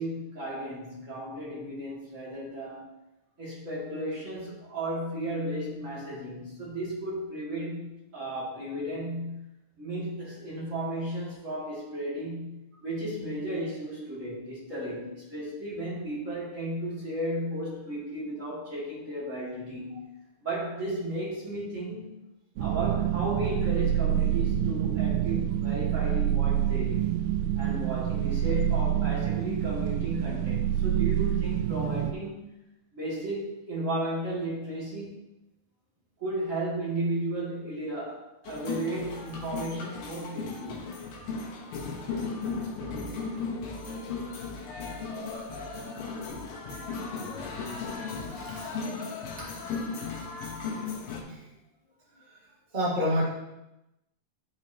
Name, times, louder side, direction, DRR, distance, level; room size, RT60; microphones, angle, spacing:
voice 1, 0.0-2.9 3.4-9.4 9.8-20.0 20.4-22.2 22.6-27.2 27.6-32.5 32.9-35.2 36.2-41.0, right 1 dB, 25° right, -8 dB, 2.3 m, -34 dB
sound 1, 22.6-32.1, right 11 dB, 80° right, 2.2 m, -27 dB
sound 2, 38.4-51.2, left 4 dB, 75° left, 2.7 m, -36 dB
voice 2, 48.4-48.9 51.2-51.4 52.3-52.4 52.7-53.2, equal, 45° right, -7 dB, 0.6 m, -30 dB
12.0 x 5.1 x 2.9 m, 0.93 s
omnidirectional pair, 4.2 m